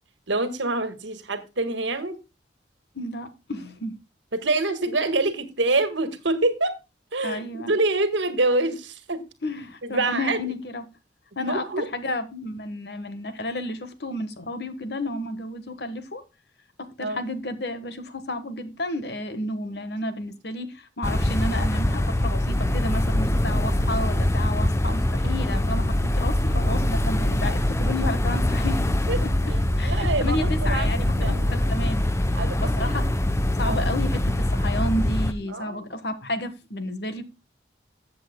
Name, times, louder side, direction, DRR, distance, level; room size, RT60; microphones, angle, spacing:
voice 1, 0.3-2.2 4.3-6.8 7.1-9.2 9.9-10.4 11.4-11.9 17.0-17.2 29.1-29.2 29.5-31.7 32.3-33.0 33.6-33.9 35.5-35.9, right 2 dB, 85° right, 1.6 m, -26 dB
voice 2, 2.9-4.0 7.2-7.7 9.4-10.8 11.4-16.2 16.8-28.9 29.2-29.3 29.8-32.0 32.6-33.0 33.6-37.2, left 1 dB, 60° left, 1.3 m, -31 dB
sound 1, 21.0-35.3, left 1 dB, 15° left, 0.6 m, -23 dB
14.5 x 7.7 x 2.2 m
head